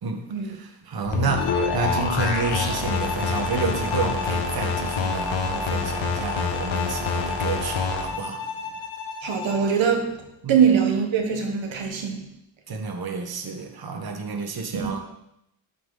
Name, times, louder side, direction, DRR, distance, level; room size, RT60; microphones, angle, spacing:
voice 1, 0.0-8.6 10.4-10.6 12.7-15.0, right 4 dB, 50° right, 1.5 m, -30 dB
sound 1, 1.0-8.1, left 4 dB, 70° left, 2.0 m, -27 dB
Bowed string instrument, 1.4-9.7, left 5 dB, 90° left, 1.7 m, -33 dB
voice 2, 9.2-12.3 14.7-14.9, right 7 dB, 70° right, 1.4 m, -22 dB
12.5 x 9.2 x 4.0 m
wide cardioid pair, 125°, 47 cm